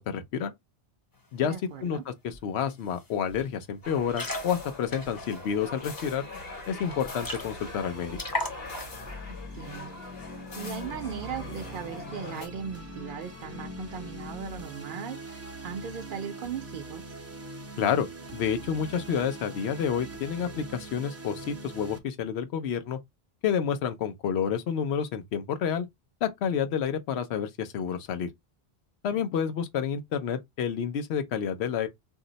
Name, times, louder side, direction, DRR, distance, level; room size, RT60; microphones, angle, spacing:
voice 1, 0.1-0.5 1.3-1.5 1.8-6.3 6.7-8.2 17.8-18.1 18.3-23.0 23.4-25.9 26.2-28.3 29.0-31.9, left 7 dB, 80° left, 0.9 m, -29 dB
voice 2, 1.4-2.0 9.3-10.0 10.5-17.0 29.1-29.2, right 7 dB, 60° right, 0.6 m, -38 dB
sound 1, 2.3-2.4 2.7-3.0 3.3-3.5 3.9-6.0 6.5-6.6 6.8-6.9 7.2-7.8 8.1-9.0, left 1 dB, 25° left, 0.6 m, -36 dB
sound 2, 3.8-12.5, left 3 dB, 65° left, 1.3 m, -42 dB
sound 3, 7.2-22.0, right 1 dB, 20° right, 0.4 m, -42 dB
2.7 x 2.0 x 3.8 m
omnidirectional pair, 1.1 m